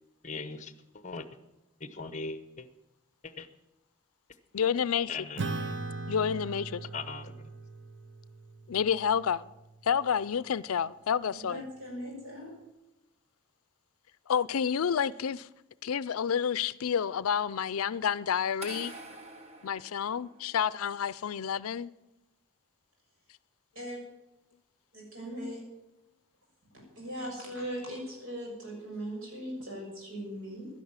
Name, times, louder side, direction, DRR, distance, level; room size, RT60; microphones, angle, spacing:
voice 1, 0.2-0.7 1.0-1.3 1.8-2.7 3.2-3.5 5.1-5.6 6.9-7.3, left 4 dB, 35° left, 0.9 m, -39 dB
voice 2, 4.5-5.3 6.1-6.9 8.7-9.4 9.8-11.6 14.3-15.5 15.8-18.9 19.6-21.9, left 7 dB, 85° left, 0.5 m, -29 dB
Acoustic guitar / Strum, 5.4-10.2, right 3 dB, 55° right, 0.8 m, -40 dB
voice 3, 11.3-12.5 23.7-24.0 24.9-25.6 26.7-30.7, equal, 75° right, 6.7 m, -39 dB
sound 1, 18.6-20.7, right 2 dB, 30° right, 1.3 m, -46 dB
11.5 x 11.0 x 7.3 m
head